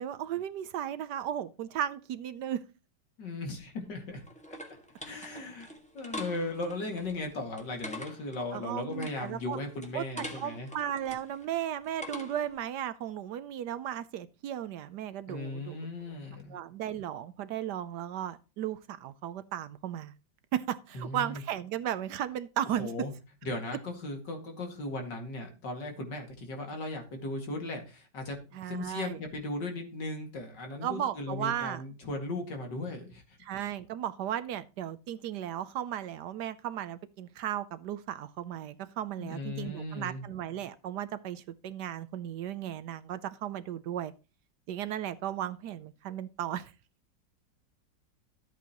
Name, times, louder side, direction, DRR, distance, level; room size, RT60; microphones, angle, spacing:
voice 1, 0.0-2.6 8.5-9.6 9.9-15.8 16.5-20.1 20.5-22.9 28.5-29.2 30.8-31.8 33.4-44.1 44.7-46.7, right 10 dB, 70° right, 1.2 m, -35 dB
voice 2, 3.2-4.2 5.0-5.7 5.9-10.7 15.3-16.6 20.9-21.4 22.8-23.1 23.4-33.4 39.2-40.3, left 2 dB, 70° left, 2.8 m, -37 dB
sound 1, 3.6-12.6, left 1 dB, 5° left, 1.4 m, -45 dB
12.5 x 8.3 x 3.0 m
omnidirectional pair, 2.0 m